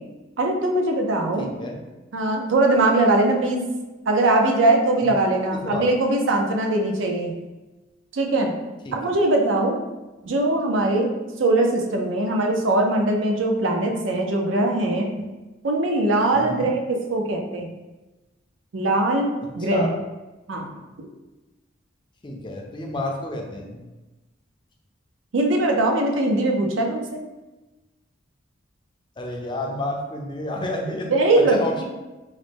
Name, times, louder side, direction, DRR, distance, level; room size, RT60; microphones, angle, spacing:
voice 1, 0.4-1.5 2.1-3.6 4.1-7.3 8.1-8.5 8.9-9.8 10.2-11.1 11.4-15.1 15.6-17.7 18.7-19.3 19.6-19.9 20.5-20.6 25.3-27.0 31.1-31.8, right 2 dB, 75° right, 2 dB, 0.5 m, -21 dB
voice 2, 1.4-1.8 5.0-5.1 5.5-5.9 8.9-9.1 16.3-16.7 19.7-19.9 22.2-23.8 29.2-31.8, left 1 dB, 25° left, 2 dB, 0.4 m, -30 dB
3.9 x 2.1 x 3.4 m, 1.1 s
head